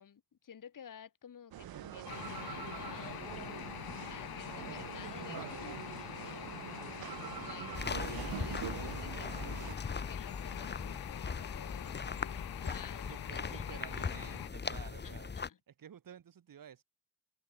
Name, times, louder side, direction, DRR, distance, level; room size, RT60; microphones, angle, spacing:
voice 1, 0.0-3.4 4.1-6.5 7.4-13.8 15.0-15.6, left 8 dB, 65° left, 3.3 m, -53 dB
sound 1, 1.5-9.8, right 12 dB, 85° right, 2.5 m, -44 dB
sound 2, 2.1-14.5, left 14 dB, 90° left, 1.9 m, -45 dB
sound 3, 7.7-15.5, left 5 dB, 30° left, 1.0 m, -40 dB
voice 2, 10.6-11.1 12.9-15.3 15.7-16.8, right 8 dB, 65° right, 2.9 m, -52 dB
cardioid pair, 60°, 35 cm